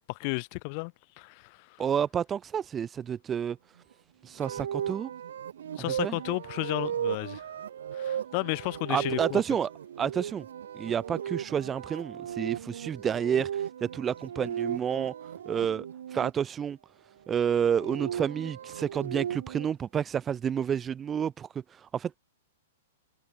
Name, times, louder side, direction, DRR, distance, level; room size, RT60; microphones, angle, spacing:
voice 1, 0.1-1.7 5.8-7.4 7.9-9.4, left 35 dB, 45° left, 2.5 m, -33 dB
voice 2, 1.8-3.6 4.2-5.1 6.0-6.2 8.9-9.7 10.0-10.4 10.7-15.1 15.5-15.8 16.1-16.8 17.3-21.5 21.8-22.2, right 8 dB, 20° right, 0.8 m, -29 dB
sound 1, 4.4-16.3 17.4-19.7, right 9 dB, 75° right, 0.7 m, -36 dB
hypercardioid pair, 130°, 0 cm